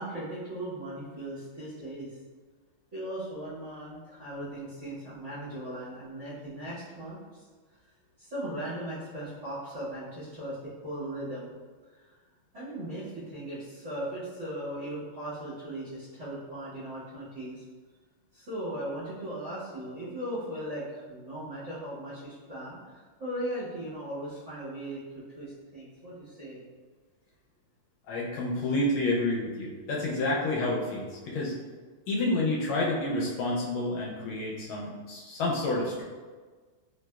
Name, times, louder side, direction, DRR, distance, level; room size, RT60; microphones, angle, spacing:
voice 1, 0.0-2.2 2.9-7.4 8.2-11.5 12.5-17.6 18.3-26.6, right 1 dB, 45° right, -12 dB, 1.0 m, -38 dB
voice 2, 28.1-31.5 32.1-36.0, left 2 dB, 75° left, -3 dB, 1.3 m, -29 dB
3.4 x 3.0 x 2.2 m, 1.4 s
omnidirectional pair, 2.4 m